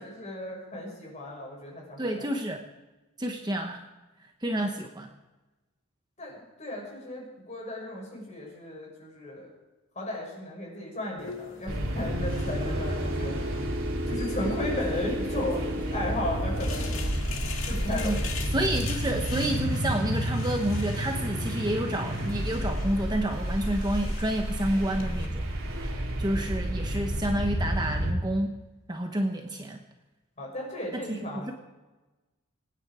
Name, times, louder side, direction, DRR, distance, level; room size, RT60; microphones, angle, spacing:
voice 1, 0.0-2.1 6.2-9.5 9.9-13.4 14.1-16.9 17.5-18.6 30.4-31.5, left 1 dB, 30° left, -2 dB, 6.1 m, -35 dB
voice 2, 2.0-2.6 3.2-3.8 4.4-5.1 17.9-18.2 18.5-25.5 25.8-28.5 28.9-29.8 31.1-31.5, right 1 dB, 20° right, 3 dB, 1.0 m, -29 dB
sound 1, 11.2-25.3, left 5 dB, 70° left, 2.0 m, -43 dB
sound 2, 11.7-28.1, equal, 70° right, 3.1 m, -30 dB
25.5 x 9.8 x 4.9 m, 1.1 s
head